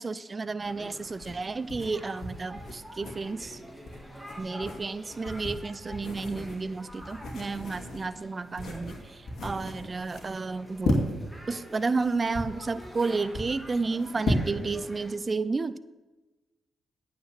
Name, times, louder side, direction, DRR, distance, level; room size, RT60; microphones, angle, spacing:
voice 1, 0.0-3.6 4.4-11.0 11.5-15.8, right 4 dB, 35° right, 15 dB, 0.6 m, -31 dB
sound 1, 0.6-14.9, left 1 dB, 65° left, 2.4 m, -35 dB
sound 2, 0.6-15.1, equal, 10° right, 2.6 m, -48 dB
8.9 x 7.9 x 6.7 m, 1.1 s
hypercardioid pair, 45°, 0 cm